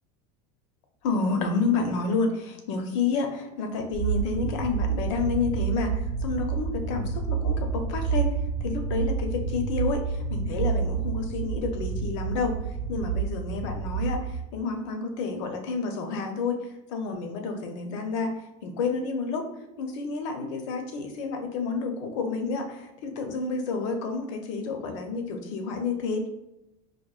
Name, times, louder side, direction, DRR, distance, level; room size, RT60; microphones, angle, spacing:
voice 1, 1.0-8.3 8.6-12.6 12.9-16.6 16.9-18.3 18.6-19.5 19.8-26.3, left 4 dB, 65° left, 5 dB, 0.6 m, -29 dB
sound 1, 3.9-14.3, right 6 dB, 85° right, 0.4 m, -29 dB
4.9 x 2.1 x 2.4 m, 0.88 s
supercardioid pair, 165°, 17 cm